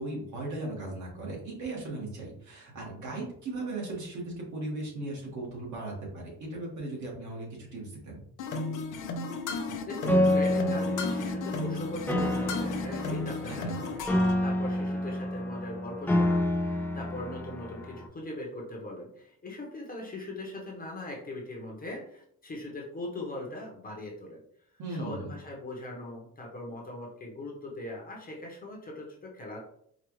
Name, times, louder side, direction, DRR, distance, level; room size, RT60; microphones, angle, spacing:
voice 1, 0.0-8.2 13.3-13.9 24.8-25.3, right 2 dB, 55° right, -2 dB, 1.6 m, -37 dB
sound 1, 8.4-14.4, left 3 dB, 60° left, 0.7 m, -34 dB
voice 2, 9.8-14.0 14.4-24.4 24.9-29.6, left 1 dB, 25° left, -1 dB, 0.8 m, -40 dB
Piano, 10.1-18.1, left 1 dB, 5° left, 0.3 m, -29 dB
4.8 x 2.4 x 3.1 m, 0.67 s
cardioid pair, 155°, 35 cm